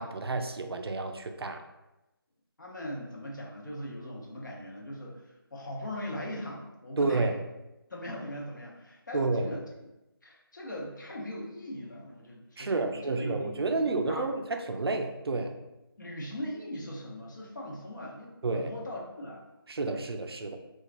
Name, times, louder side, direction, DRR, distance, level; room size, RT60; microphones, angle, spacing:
voice 1, 0.0-1.6 7.0-7.3 9.1-9.6 12.6-15.5 18.4-18.7 19.7-20.6, right 3 dB, 85° right, 5 dB, 0.4 m, -30 dB
voice 2, 2.6-7.4 7.9-9.6 10.2-14.2 16.0-19.4, left 1 dB, 50° left, -3 dB, 0.7 m, -40 dB
2.9 x 2.3 x 2.4 m, 0.98 s
figure-of-eight pair, 175°, 13 cm